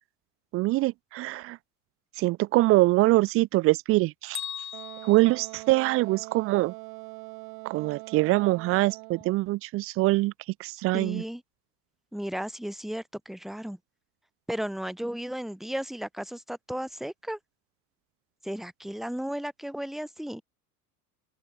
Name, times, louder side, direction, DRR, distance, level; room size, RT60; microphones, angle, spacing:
voice 1, 0.5-1.6 2.2-4.4 5.0-6.7 7.6-10.3 10.6-11.2, right 19 dB, 30° right, 0.4 m, -24 dB
Bell, 4.3-6.4, left 10 dB, 35° left, 7.2 m, -40 dB
Wind instrument woodwind instrument, 4.7-9.4, right 36 dB, 60° right, 2.5 m, -43 dB
voice 2, 10.9-11.4 12.1-13.8 14.5-17.4 18.4-20.4, equal, ahead, 1.4 m, -34 dB
open air
hypercardioid pair, 80°, 48 cm